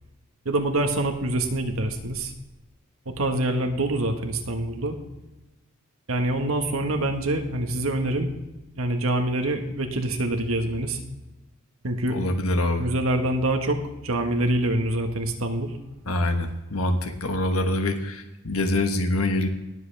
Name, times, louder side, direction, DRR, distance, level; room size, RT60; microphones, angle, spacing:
voice 1, 0.4-2.3 3.1-4.9 6.1-8.3 8.8-11.0 11.8-12.2 12.8-15.8, right 1 dB, 75° right, 4 dB, 1.5 m, -25 dB
voice 2, 12.1-12.9 16.1-19.5, left 1 dB, 85° left, 6 dB, 1.4 m, -25 dB
19.5 x 7.7 x 3.4 m, 1.0 s
head